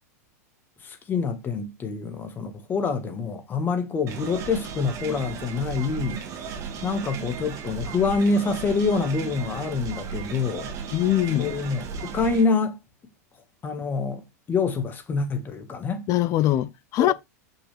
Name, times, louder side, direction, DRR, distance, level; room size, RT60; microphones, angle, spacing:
voice 1, 0.8-10.7 11.4-12.8 13.6-16.0 17.0-17.1, left 4 dB, 20° left, 1.7 m, -26 dB
sound 1, 4.1-12.5, right 6 dB, 35° right, 1.5 m, -35 dB
voice 2, 10.9-11.5 16.1-17.1, left 13 dB, 40° left, 0.6 m, -22 dB
6.1 x 5.6 x 3.4 m
hypercardioid pair, 125°, 9 cm